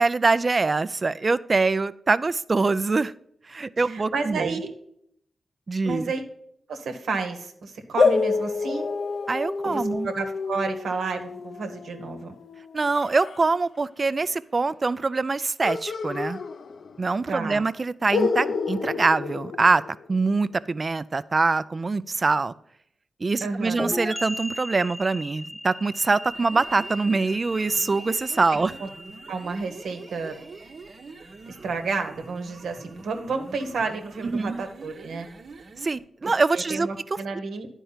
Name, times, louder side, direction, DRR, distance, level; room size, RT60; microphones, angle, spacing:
voice 1, 0.0-3.1 3.5-4.6 5.7-6.1 9.3-10.1 12.7-16.4 17.0-19.8 20.1-22.5 23.2-28.7 34.2-34.6 35.8-36.9, right 3 dB, 45° right, 17 dB, 0.4 m, -24 dB
voice 2, 3.8-4.7 5.8-6.2 6.7-8.9 9.6-12.3 17.3-17.6 23.4-23.8 28.5-28.9 29.3-30.3 31.5-35.3 36.2-37.7, right 4 dB, 85° right, 5 dB, 1.0 m, -31 dB
sound 1, 8.0-13.4 15.6-17.1 17.4-17.5 18.1-20.3, left 4 dB, 70° left, 0.5 m, -28 dB
sound 2, 23.8-31.3, equal, 10° left, 0.8 m, -37 dB
sound 3, 26.2-36.0, right 4 dB, 60° right, 0.8 m, -45 dB
10.0 x 4.5 x 5.6 m, 0.70 s
cardioid pair, 50°, 0 cm